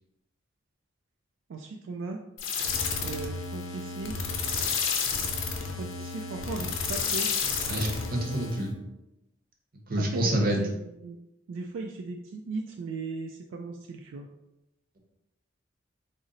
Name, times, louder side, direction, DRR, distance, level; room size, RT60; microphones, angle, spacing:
voice 1, 1.5-2.2 3.0-4.1 5.8-7.3 10.0-11.2 11.5-14.3, right 3 dB, 75° right, 2 dB, 0.3 m, -37 dB
sound 1, 2.4-8.7, left 5 dB, 90° left, 0.6 m, -31 dB
voice 2, 7.7-8.8 9.9-10.6, right 1 dB, 50° right, 1 dB, 0.7 m, -27 dB
3.9 x 2.0 x 3.8 m, 0.91 s
head